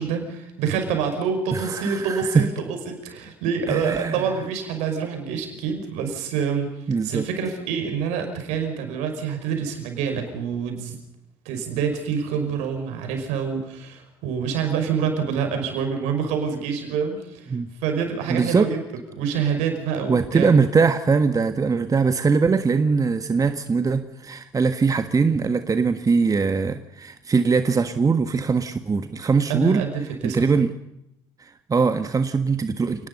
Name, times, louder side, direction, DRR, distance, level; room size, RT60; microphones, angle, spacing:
voice 1, 0.0-11.0 11.5-17.5 17.8-18.8 19.2-20.5 29.5-30.5, right 6 dB, 70° right, 5 dB, 5.5 m, -27 dB
voice 2, 1.5-2.5 3.7-4.2 6.9-7.3 17.5-17.7 18.3-18.7 20.1-29.8 30.2-30.7 31.4-33.1, right 5 dB, 30° right, 9 dB, 1.6 m, -21 dB
28.5 x 19.5 x 5.5 m, 0.84 s
hypercardioid pair, 60°, 12 cm